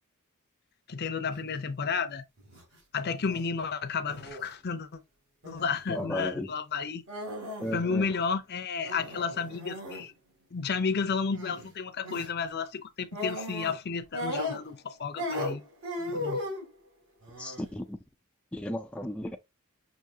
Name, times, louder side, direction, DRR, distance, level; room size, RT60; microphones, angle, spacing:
voice 1, 0.9-2.2 2.9-5.0 5.5-7.0 7.7-10.1 10.5-15.6 16.0-16.4, left 5 dB, 50° left, 0.6 m, -32 dB
sound 1, 2.4-2.6 3.0-3.4 4.1-4.5 5.4-5.8 7.1-7.8 8.0-8.1 8.8-10.1 11.3-11.7 12.0-12.3 13.1-13.8 14.1-14.9 15.2-16.6 17.2-17.7, left 1 dB, 60° right, 2.8 m, -36 dB
voice 2, 5.9-6.5 7.6-8.1 17.4-18.0 18.5-19.4, left 1 dB, 5° left, 0.3 m, -34 dB
6.0 x 2.7 x 2.7 m
head